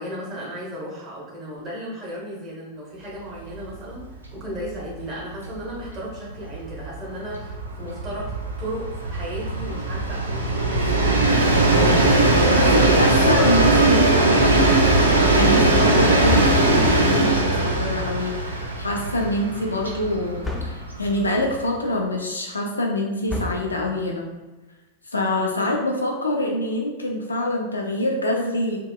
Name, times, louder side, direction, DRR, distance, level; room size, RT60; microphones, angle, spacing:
voice 1, 0.0-8.3 8.6-11.6 25.4-25.7, equal, 30° right, -6 dB, 0.9 m, -35 dB
Train, 3.5-3.6 4.0-4.1 4.3-21.7, right 2 dB, 80° right, 0.3 m, -20 dB
voice 2, 12.5-14.8 15.3-20.4 20.6-24.2 25.1-28.8, left 1 dB, 80° left, 0 dB, 0.4 m, -25 dB
sound 1, 16.3-17.2 20.4-21.1 23.3-24.1, left 2 dB, 10° left, 0.3 m, -31 dB
2.8 x 2.0 x 2.2 m, 1.2 s
figure-of-eight pair, 90°, 0 cm